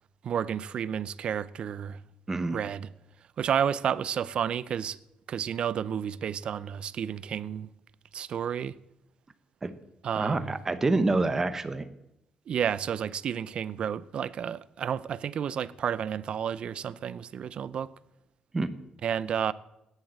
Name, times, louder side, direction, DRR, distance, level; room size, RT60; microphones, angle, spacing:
voice 1, 0.2-2.0 2.5-2.9 3.4-5.0 5.3-7.7 8.1-8.8 10.0-10.6 12.5-17.9 19.0-19.5, right 8 dB, 45° right, 0.6 m, -31 dB
voice 2, 10.2-11.9 18.5-18.7, right 3 dB, 15° right, 1.1 m, -27 dB
16.0 x 10.5 x 7.6 m
cardioid pair, 170°, 2 cm